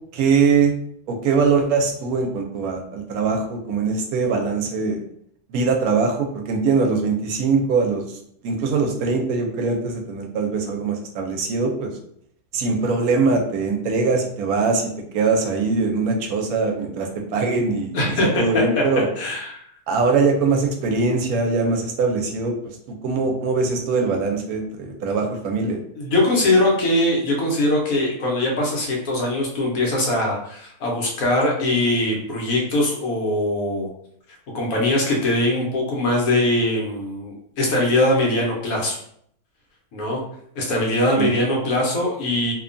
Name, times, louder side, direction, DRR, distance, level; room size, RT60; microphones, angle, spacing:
voice 1, 0.1-0.7 1.1-5.0 5.5-8.0 8.4-11.9 12.5-19.1 19.9-22.7 23.0-25.8 41.1-41.3, right 4 dB, 75° right, 3 dB, 1.0 m, -22 dB
voice 2, 17.9-18.8 19.2-19.6 26.0-33.9 34.5-39.0 39.9-40.2 40.6-42.5, left 1 dB, 70° left, -1 dB, 1.1 m, -21 dB
2.8 x 2.2 x 2.5 m, 0.67 s
omnidirectional pair, 1.6 m